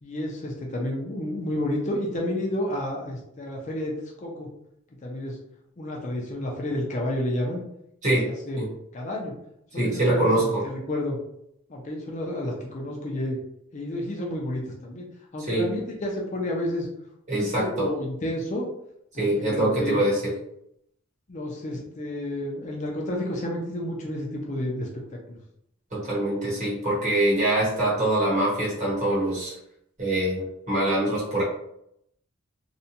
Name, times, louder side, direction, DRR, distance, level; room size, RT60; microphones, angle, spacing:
voice 1, 0.0-4.5 5.0-5.4 5.8-7.6 8.2-8.6 8.9-9.3 9.7-11.2 11.7-13.4 13.7-16.9 17.3-18.7 19.1-20.0 21.3-25.4, left 1 dB, 35° left, -1 dB, 0.5 m, -30 dB
voice 2, 9.8-10.6 15.5-15.7 17.3-17.9 19.2-20.3 25.9-29.5 30.0-31.4, right 1 dB, 35° right, -7 dB, 1.1 m, -24 dB
2.6 x 2.2 x 2.7 m, 0.75 s
head